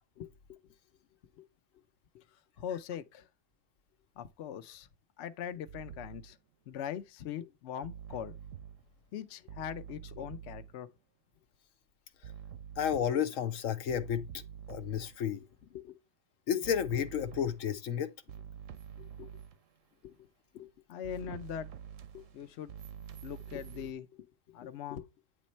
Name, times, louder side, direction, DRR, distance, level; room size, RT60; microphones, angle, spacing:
voice 1, 0.2-0.6 1.4-1.5 2.1-2.2 2.6-3.3 4.2-4.9 5.2-6.4 6.7-8.3 9.1-10.9 15.7-16.0 19.0-19.3 20.0-20.1 20.5-21.7 22.1-22.7 23.2-25.1, left 9 dB, 65° left, 0.9 m, -42 dB
sound 1, 5.7-6.3 7.8-8.8 9.5-10.8 12.2-13.5 13.9-15.3 16.6-17.8 18.3-19.6 21.0-23.9, right 8 dB, 80° right, 1.1 m, -47 dB
voice 2, 12.8-14.3 14.7-15.4 16.5-18.1, left 8 dB, 85° left, 1.1 m, -31 dB
9.2 x 3.1 x 4.3 m
omnidirectional pair, 1.3 m